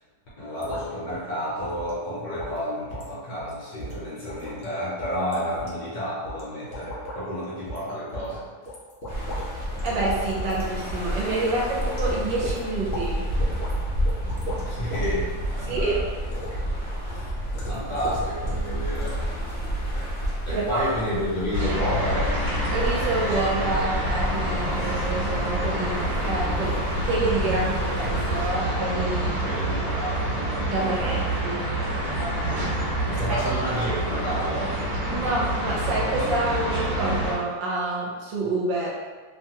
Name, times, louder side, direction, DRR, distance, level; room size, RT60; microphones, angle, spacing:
voice 1, 0.4-8.4 14.7-16.0 17.1-17.3 17.7-19.2 20.5-22.4 29.4-30.5 30.7-31.2 33.0-34.8, equal, 60° left, -7 dB, 1.1 m, -30 dB
sound 1, 0.6-0.8 1.1-1.2 1.6-1.9 2.4-2.6 2.9-3.1 3.4-3.5 3.8-4.6 5.0-5.7 6.2-6.4 6.7-7.2 7.7-7.8 8.1-9.5 9.7-10.1 10.4-10.7 11.0-11.1 11.5-12.0 12.4-13.1 13.4-13.7 14.1-15.1 15.4-15.7 16.3-16.6 17.5-18.7 19.0-19.1, equal, 80° left, 0.5 m, -36 dB
sound 2, 9.1-28.5, right 1 dB, 40° left, 0.7 m, -30 dB
voice 2, 9.5-13.3 15.7-15.9 20.5-20.8 22.7-26.0 26.2-26.8 27.0-29.3 30.6-31.6 33.3-33.4 35.1-38.9, right 2 dB, 75° right, -4 dB, 1.3 m, -28 dB
sound 3, 21.5-37.3, right 1 dB, 45° right, 1.4 m, -27 dB
3.2 x 2.2 x 2.8 m, 1.5 s
omnidirectional pair, 2.1 m